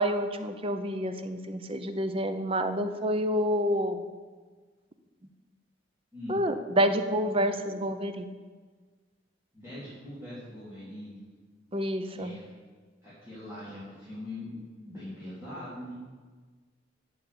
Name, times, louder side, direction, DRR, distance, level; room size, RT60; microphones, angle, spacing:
voice 1, 0.0-4.0 6.3-8.3 11.7-12.3, equal, 30° right, 8 dB, 0.7 m, -28 dB
voice 2, 9.5-11.2 12.1-12.5 13.0-16.0, left 1 dB, 15° right, -14 dB, 3.6 m, -42 dB
8.0 x 7.4 x 8.4 m, 1.4 s
head